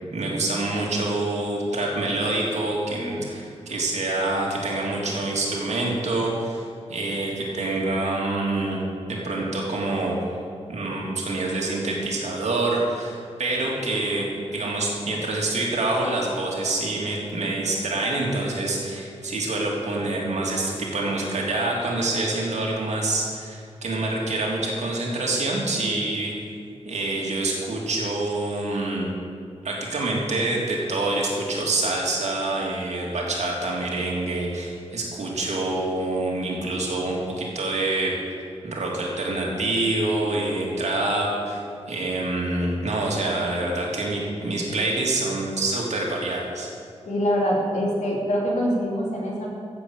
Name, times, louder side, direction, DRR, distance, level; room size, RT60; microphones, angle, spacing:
voice 1, 0.0-6.6 6.9-8.8 9.1-10.2 10.7-26.3 26.8-29.1 29.6-38.4 38.6-46.7, right 2 dB, 70° right, -2 dB, 3.0 m, -26 dB
voice 2, 47.1-49.5, equal, 85° left, -2 dB, 3.0 m, -24 dB
14.0 x 7.9 x 8.2 m, 2.3 s
wide cardioid pair, 170°, 12 cm